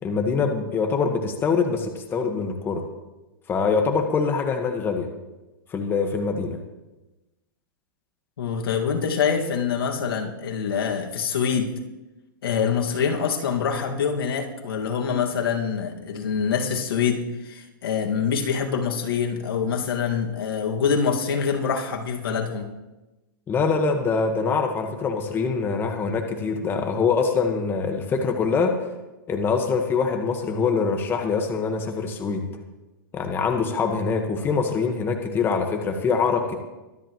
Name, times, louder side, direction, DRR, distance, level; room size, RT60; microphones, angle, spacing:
voice 1, 0.0-2.8 3.5-5.1 5.7-6.6 23.5-28.7 29.3-32.5 33.1-36.6, left 5 dB, 20° left, 4 dB, 1.4 m, -24 dB
voice 2, 8.4-11.7 12.4-22.7, left 6 dB, 85° left, 3 dB, 2.0 m, -25 dB
24.0 x 10.0 x 3.1 m, 1.0 s
hypercardioid pair, 140°, 12 cm